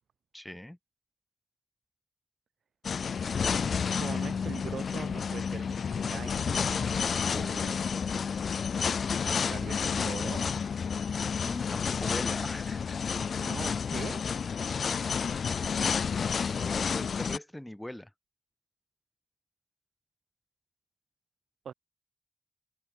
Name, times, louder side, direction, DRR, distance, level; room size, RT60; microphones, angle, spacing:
voice 1, 0.3-0.8 11.4-13.0 16.4-18.1, left 1 dB, 10° left, 4.1 m, -41 dB
sound 1, 2.8-17.4, left 6 dB, 70° left, 0.6 m, -30 dB
voice 2, 4.0-6.9 7.3-8.1 9.5-10.5 13.4-14.2 21.6-21.7, right 7 dB, 85° right, 7.1 m, -42 dB
cardioid pair, 80°, 0 cm